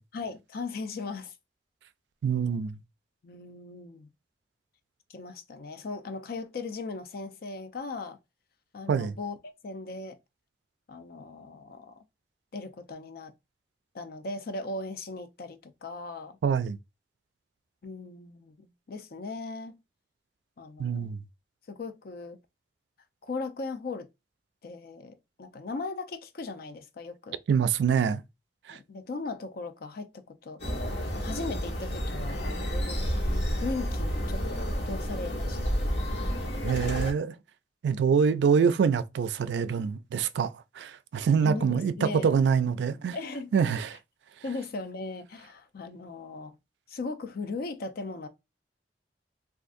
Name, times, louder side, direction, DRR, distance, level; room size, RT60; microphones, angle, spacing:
voice 1, 0.1-1.3 3.2-4.1 5.1-8.2 8.7-10.2 10.9-12.0 12.5-13.3 13.9-16.4 17.8-19.8 20.6-21.1 21.7-22.4 23.2-24.1 24.6-27.4 28.7-30.7 31.1-33.2 33.6-35.7 41.4-42.3 43.1-43.5 44.4-46.5 46.9-48.3, left 3 dB, 60° left, 0.5 m, -38 dB
voice 2, 2.2-2.8 8.9-9.2 16.4-16.8 20.8-21.2 27.5-28.2 28.7-28.8 36.6-37.3 37.8-43.2 43.5-44.0, right 6 dB, 75° right, 0.3 m, -25 dB
sound 1, 30.6-37.1, equal, 75° left, 1.4 m, -30 dB
3.6 x 2.4 x 2.5 m
head